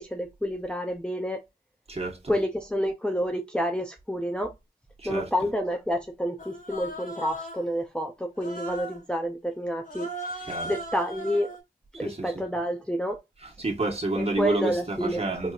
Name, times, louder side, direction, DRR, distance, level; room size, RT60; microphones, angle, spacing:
voice 1, 0.0-1.4 2.3-4.5 5.0-11.5 11.9-13.2 14.1-15.2, equal, 5° left, 0.6 m, -29 dB
voice 2, 1.9-2.3 5.0-5.3 10.5-10.7 12.0-12.2 13.6-15.5, right 2 dB, 40° right, 1.5 m, -29 dB
Human voice, 6.4-7.7 8.4-9.0 9.8-11.6, right 1 dB, 55° left, 1.5 m, -37 dB
4.7 x 2.6 x 2.5 m
wide cardioid pair, 55°, 17 cm